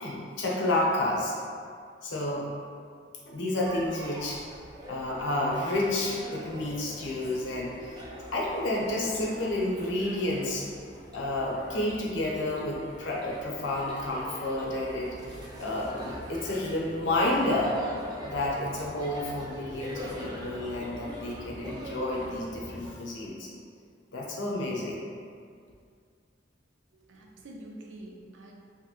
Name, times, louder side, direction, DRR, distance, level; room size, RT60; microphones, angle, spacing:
voice 1, 0.0-1.4 2.0-2.5 3.3-4.4 4.9-8.0 8.3-10.7 11.1-17.8 18.2-23.5 24.1-25.0, left 1 dB, 85° left, -3 dB, 0.5 m, -30 dB
sound 1, 3.6-22.9, equal, 20° right, 0.3 m, -42 dB
voice 2, 26.9-28.5, right 1 dB, 90° right, 0 dB, 0.4 m, -46 dB
2.9 x 2.6 x 2.3 m, 2.2 s
head